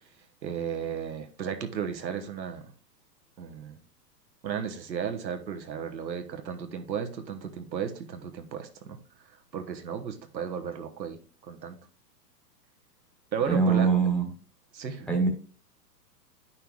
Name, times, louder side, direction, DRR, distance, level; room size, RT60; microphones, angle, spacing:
voice 1, 0.4-2.7 3.4-3.8 4.4-9.3 9.5-11.8 13.3-13.9 14.7-15.1, right 7 dB, 90° right, 6 dB, 1.2 m, -34 dB
voice 2, 13.5-14.3 15.1-15.3, right 5 dB, ahead, 2 dB, 1.2 m, -23 dB
9.1 x 5.6 x 2.4 m, 0.38 s
hypercardioid pair, 125°, 50 cm